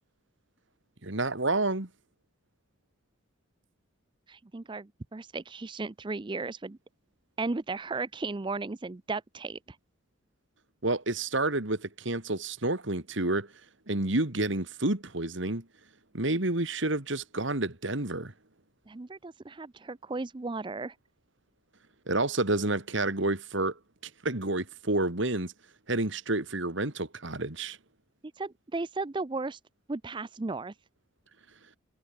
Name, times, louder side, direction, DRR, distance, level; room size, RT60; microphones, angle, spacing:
voice 1, 1.0-1.9 10.8-13.5 13.9-15.6 16.1-18.3 22.1-23.7 24.2-25.5 25.9-27.8, right 2 dB, 60° right, 2.4 m, -29 dB
voice 2, 4.3-6.8 7.4-9.8 18.9-20.9 28.4-29.6 29.9-30.7, right 3 dB, 25° right, 0.5 m, -35 dB
head